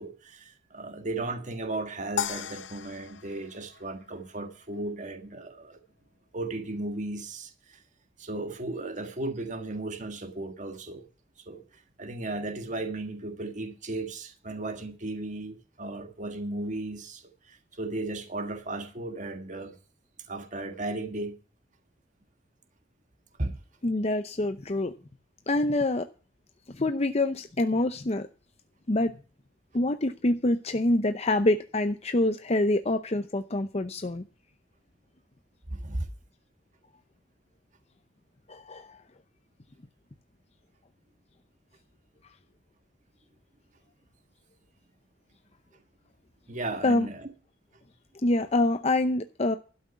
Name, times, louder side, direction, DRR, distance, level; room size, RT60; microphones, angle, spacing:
voice 1, 0.0-5.8 6.3-7.8 8.2-11.0 11.4-11.6 12.0-19.8 20.3-21.3 23.4-23.6 35.7-36.1 46.5-47.3, right 2 dB, 40° right, 1.6 m, -35 dB
sound 1, 2.2-4.6, left 9 dB, 80° left, 0.8 m, -36 dB
voice 2, 23.8-24.9 25.5-26.1 26.7-28.3 28.9-29.1 29.7-34.2 38.5-39.0 46.8-47.1 48.2-49.6, left 2 dB, 35° left, 0.7 m, -26 dB
12.5 x 6.2 x 8.1 m
head